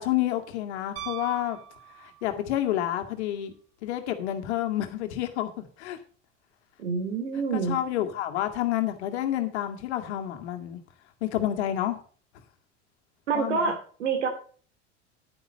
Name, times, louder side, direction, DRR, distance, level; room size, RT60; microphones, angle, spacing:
voice 1, 0.0-1.6 2.0-3.5 3.8-6.0 7.5-10.8 11.2-12.0 13.3-13.7, left 12 dB, 65° left, 6 dB, 2.2 m, -29 dB
Piano, 1.0-2.5 4.9-5.0, right 12 dB, 40° right, 3.4 m, -41 dB
voice 2, 6.8-7.8 13.3-14.3, right 5 dB, 70° right, 6 dB, 3.5 m, -27 dB
10.5 x 9.9 x 4.0 m, 0.42 s
figure-of-eight pair, 75°, 36 cm